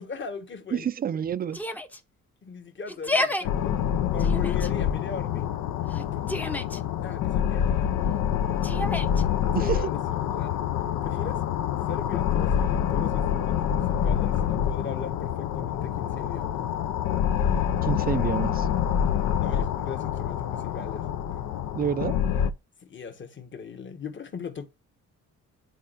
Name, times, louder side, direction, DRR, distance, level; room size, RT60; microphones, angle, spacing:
voice 1, 0.0-0.9 2.4-3.8 4.1-5.5 6.1-7.9 8.5-8.7 9.5-10.6 11.0-16.7 19.4-21.4 22.8-24.7, left 5 dB, 40° left, 1.3 m, -39 dB
voice 2, 0.7-1.6 9.5-9.8 17.8-18.7 21.7-22.2, right 8 dB, 30° right, 0.4 m, -28 dB
Yell, 1.5-2.0 2.9-3.4 4.2-4.7 5.9-6.8 8.6-9.2, left 2 dB, 5° left, 0.6 m, -30 dB
sound 1, 3.4-22.5, left 9 dB, 80° left, 0.6 m, -26 dB
10.5 x 4.1 x 2.5 m
cardioid pair, 90°, 30 cm